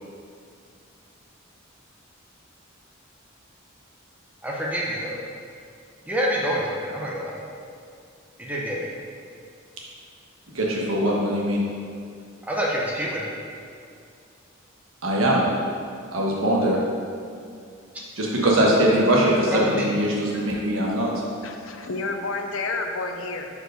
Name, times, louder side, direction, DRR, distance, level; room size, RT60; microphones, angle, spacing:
voice 1, 4.4-5.2 6.1-7.4 8.4-8.9 12.5-13.3 19.6-19.9, equal, 5° right, -4 dB, 0.6 m, -27 dB
voice 2, 10.5-11.6 15.0-15.4 16.1-16.8 18.2-21.1, right 1 dB, 75° right, -3 dB, 1.2 m, -21 dB
voice 3, 21.4-23.5, left 3 dB, 75° left, 4 dB, 0.6 m, -30 dB
4.7 x 4.5 x 5.1 m, 2.3 s
head